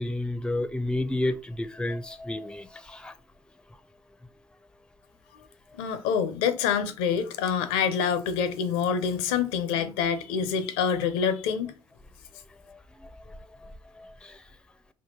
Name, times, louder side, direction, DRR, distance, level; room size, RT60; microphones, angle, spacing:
voice 1, 0.0-3.1 12.7-14.4, left 1 dB, 5° left, 0.4 m, -32 dB
voice 2, 5.8-11.7, left 7 dB, 70° left, 0.5 m, -26 dB
4.4 x 2.2 x 2.8 m
figure-of-eight pair, 45°, 13 cm